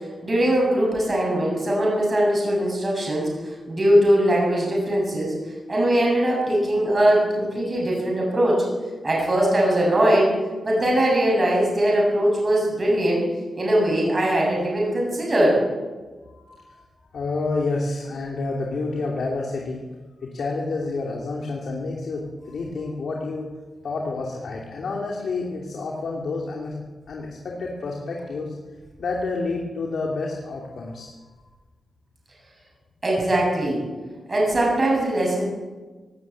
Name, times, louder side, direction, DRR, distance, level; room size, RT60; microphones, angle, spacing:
voice 1, 0.2-5.3 5.7-8.7 9.0-10.3 10.6-13.2 13.6-15.6 33.0-33.8 34.3-35.4, right 1 dB, 30° right, -3 dB, 7.6 m, -21 dB
voice 2, 16.2-16.9 17.1-19.8 20.2-23.5 23.8-26.8 27.1-28.5 29.0-31.3, left 3 dB, 70° left, -1 dB, 2.9 m, -29 dB
18.5 x 17.0 x 8.7 m, 1.3 s
wide cardioid pair, 135°, 0 cm